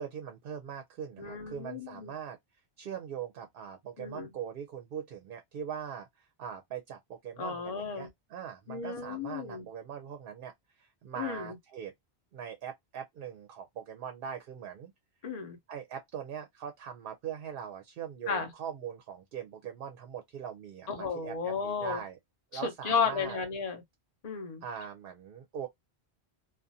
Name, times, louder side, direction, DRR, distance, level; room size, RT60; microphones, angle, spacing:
voice 1, 0.0-2.4 2.8-11.9 12.3-14.9 15.7-22.2 22.5-23.4 24.6-25.7, right 8 dB, 65° right, 0.7 m, -41 dB
voice 2, 1.2-2.1 4.0-4.3 7.4-8.1 8.7-9.7 11.2-11.6 15.2-15.6 18.3-18.5 20.9-22.0 22.5-23.8 24.2-24.6, left 5 dB, 40° left, 0.8 m, -33 dB
2.4 x 2.3 x 2.6 m
omnidirectional pair, 1.1 m